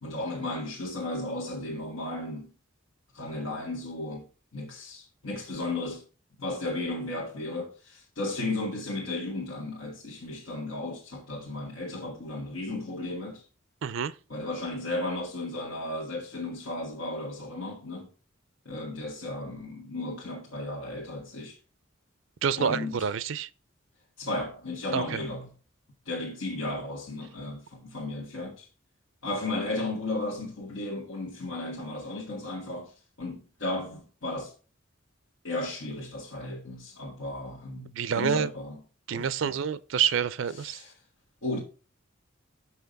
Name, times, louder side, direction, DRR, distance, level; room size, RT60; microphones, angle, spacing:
voice 1, 0.0-2.5 3.1-4.3 4.5-6.0 6.4-13.4 14.3-18.1 18.6-21.6 22.6-23.0 24.2-25.5 26.0-28.7 29.2-32.9 33.2-34.5 35.4-38.8 39.1-39.6 40.6-40.9 41.4-41.6, left 2 dB, 90° left, 1.6 m, -34 dB
voice 2, 13.8-14.1 22.4-23.5 24.9-25.2 37.9-38.5 39.1-40.8, right 7 dB, 70° right, 0.4 m, -28 dB
6.3 x 5.8 x 5.2 m
head